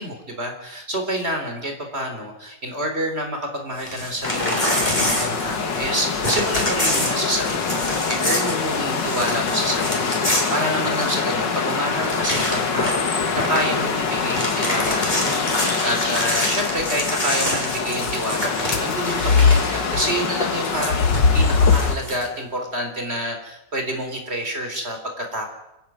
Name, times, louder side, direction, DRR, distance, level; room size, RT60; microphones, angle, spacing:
voice 1, 0.0-25.5, equal, 35° right, 4 dB, 4.1 m, -28 dB
Crumpling crinkling / Tearing, 3.8-5.9 6.2-11.3 11.7-11.8 12.0-13.1 13.3-13.7 14.1-19.8 20.6-22.2, left 1 dB, 25° left, 5.2 m, -27 dB
sound 1, 4.2-22.0, left 5 dB, 80° left, 2.5 m, -23 dB
28.5 x 11.5 x 9.3 m, 0.92 s
omnidirectional pair, 1.9 m